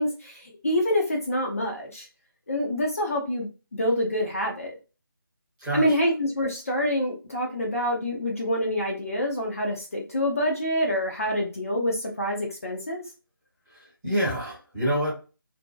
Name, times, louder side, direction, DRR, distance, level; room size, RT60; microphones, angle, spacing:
voice 1, 0.0-2.1 2.5-4.7 5.7-13.0, equal, 40° left, 1 dB, 0.5 m, -26 dB
voice 2, 13.7-15.1, equal, 5° right, -10 dB, 0.7 m, -27 dB
2.6 x 2.1 x 2.3 m, 0.32 s
figure-of-eight pair, 160°, 12 cm